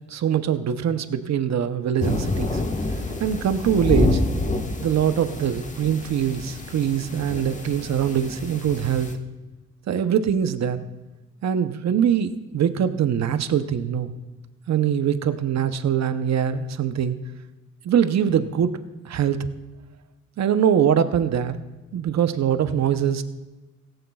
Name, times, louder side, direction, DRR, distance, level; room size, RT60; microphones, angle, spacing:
voice 1, 0.1-2.6 3.2-4.2 4.8-9.1 9.9-10.8 11.4-14.1 14.7-17.1 17.8-18.8 19.0-19.4 20.4-21.6 21.9-23.2, right 8 dB, 60° right, 10 dB, 0.8 m, -23 dB
sound 1, 2.0-9.1, left 2 dB, 25° left, 1.4 m, -28 dB
16.5 x 14.5 x 2.4 m, 1.1 s
cardioid pair, 95°, 31 cm